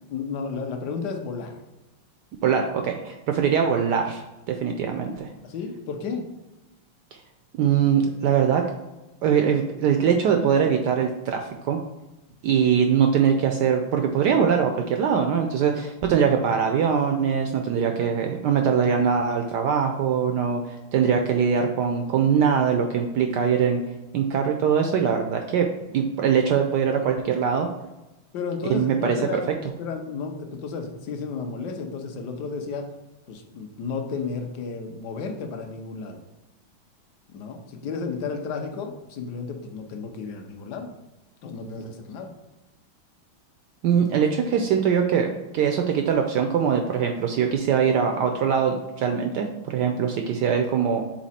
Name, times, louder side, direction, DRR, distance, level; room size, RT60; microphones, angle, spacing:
voice 1, 0.1-1.6 5.4-6.3 28.3-32.9 33.3-36.2 37.3-40.9 41.4-42.3, left 5 dB, 65° left, 4 dB, 1.2 m, -33 dB
voice 2, 2.4-5.3 7.6-8.6 9.2-11.8 12.4-23.8 24.1-27.7 28.7-29.4 43.8-51.0, right 7 dB, 80° right, 4 dB, 0.9 m, -22 dB
6.1 x 4.1 x 4.2 m, 1.0 s
omnidirectional pair, 2.4 m